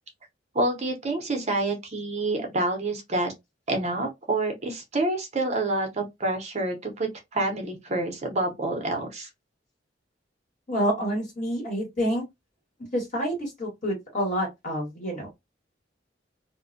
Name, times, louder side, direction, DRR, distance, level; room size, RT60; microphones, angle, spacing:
voice 1, 0.5-3.3 3.7-9.3, right 2 dB, 40° right, 0.6 m, -28 dB
voice 2, 10.7-12.3 12.8-15.4, equal, 45° left, 1.4 m, -28 dB
2.4 x 2.1 x 2.5 m
head